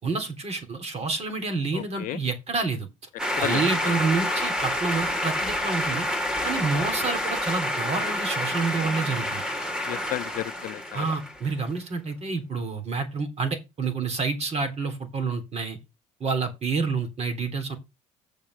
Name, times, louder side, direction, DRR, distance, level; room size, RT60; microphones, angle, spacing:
voice 1, 0.0-2.9 3.4-6.1 6.4-9.4 10.9-15.8 16.2-17.8, right 4 dB, 40° right, 3.5 m, -28 dB
voice 2, 1.7-2.2 3.4-3.6 9.9-11.1, left 15 dB, 60° left, 0.5 m, -32 dB
sound 1, 3.2-11.5, left 1 dB, 5° right, 2.6 m, -28 dB
7.3 x 5.3 x 7.3 m
supercardioid pair, 75°, 16 cm